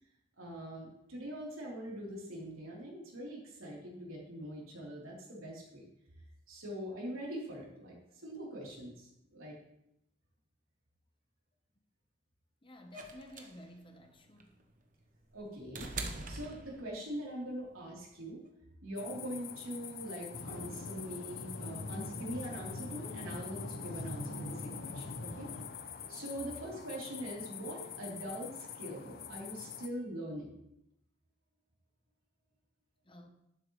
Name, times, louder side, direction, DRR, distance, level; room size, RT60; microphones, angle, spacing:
voice 1, 0.4-5.9 6.5-8.0 8.2-9.6 15.3-15.9 16.3-18.4 18.8-25.5 26.1-30.5, equal, 80° right, -3 dB, 3.5 m, -43 dB
voice 2, 12.6-14.5 33.1-33.3, equal, 25° left, 5 dB, 0.9 m, -53 dB
sound 1, 12.9-17.2 18.4-18.5, right 3 dB, 40° right, 0.9 m, -43 dB
sound 2, 19.0-29.9, left 9 dB, 45° left, 0.5 m, -46 dB
sound 3, 20.3-25.7, left 1 dB, 75° left, 0.9 m, -43 dB
11.0 x 9.6 x 3.2 m, 0.80 s
head